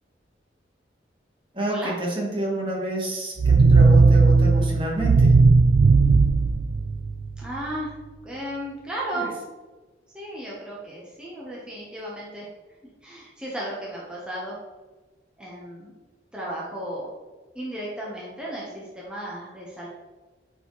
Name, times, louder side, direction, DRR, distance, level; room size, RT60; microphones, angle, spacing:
voice 1, 1.6-5.3, right 1 dB, 30° right, -2 dB, 1.5 m, -28 dB
sound 1, 3.4-7.4, right 4 dB, 60° right, 0.3 m, -16 dB
voice 2, 7.4-8.0 8.2-9.3 10.1-12.5 13.0-14.6 15.4-15.9 16.3-17.1 17.5-19.9, right 1 dB, 5° right, -6 dB, 1.1 m, -34 dB
8.9 x 4.6 x 3.2 m, 1.3 s
head